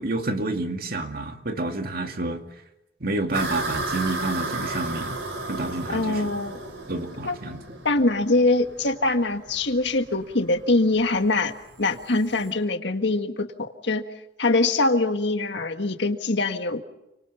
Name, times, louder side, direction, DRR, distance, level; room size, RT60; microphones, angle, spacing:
voice 1, 0.0-2.4 3.0-5.2 5.5-6.3 6.9-7.8, right 2 dB, 55° right, 5 dB, 2.4 m, -29 dB
sound 1, 3.3-12.5, right 2 dB, 85° right, 4.8 m, -34 dB
voice 2, 5.9-6.6 7.2-7.4 7.8-11.5 11.8-14.0 14.4-16.8, left 2 dB, 65° left, 7 dB, 1.7 m, -23 dB
29.5 x 25.0 x 5.8 m, 0.91 s
head